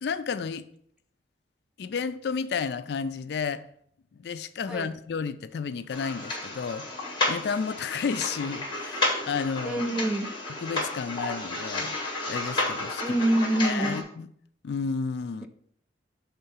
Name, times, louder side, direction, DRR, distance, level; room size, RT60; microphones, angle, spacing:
voice 1, 0.0-0.7 1.8-3.6 4.2-9.8 10.6-12.0 12.3-13.2 13.6-14.3 14.6-15.5, left 5 dB, 60° left, 0.3 m, -32 dB
sound 1, 5.9-14.0, left 2 dB, 25° left, 1.3 m, -32 dB
voice 2, 9.6-10.3 13.0-14.0, right 1 dB, 5° right, 0.4 m, -26 dB
5.6 x 3.6 x 5.5 m
head